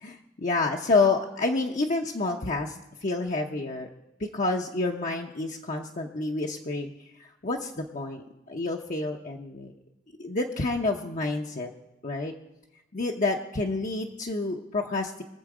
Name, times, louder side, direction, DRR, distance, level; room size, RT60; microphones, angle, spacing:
voice 1, 0.0-3.9 4.2-6.9 7.2-9.7 10.2-11.7 12.0-12.3 12.9-15.2, left 3 dB, 45° left, 0 dB, 0.8 m, -29 dB
22.5 x 7.5 x 4.9 m, 0.95 s
head